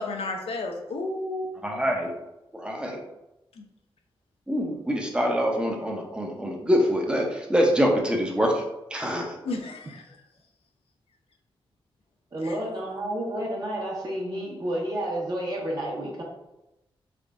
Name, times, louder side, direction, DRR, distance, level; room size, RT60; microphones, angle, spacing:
voice 1, 0.0-1.5 3.6-3.7 9.4-10.2 12.4-12.6, left 2 dB, 80° left, 1 dB, 0.6 m, -32 dB
voice 2, 1.6-2.1 2.5-3.0 4.5-8.6 8.9-9.4, equal, 10° right, 0 dB, 0.8 m, -25 dB
voice 3, 12.3-16.2, right 1 dB, 40° right, -4 dB, 1.3 m, -30 dB
3.5 x 3.5 x 2.5 m, 0.93 s
cardioid pair, 80°, 10 cm